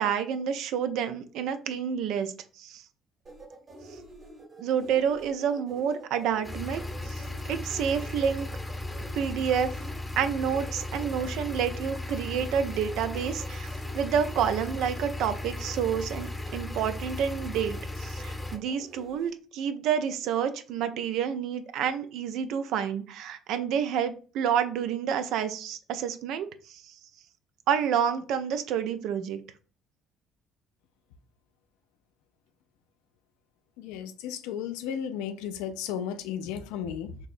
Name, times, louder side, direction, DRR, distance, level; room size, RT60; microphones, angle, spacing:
voice 1, 0.0-2.8 4.6-8.5 9.1-9.7 10.2-27.0 27.7-29.4, right 8 dB, 70° right, 0.4 m, -29 dB
sound 1, 3.2-19.3, right 2 dB, 50° right, 1.5 m, -48 dB
sound 2, 6.4-18.6, left 2 dB, 15° left, 0.7 m, -36 dB
voice 2, 33.8-37.2, left 8 dB, 75° left, 0.4 m, -34 dB
4.6 x 2.7 x 2.5 m
hypercardioid pair, 55°, 0 cm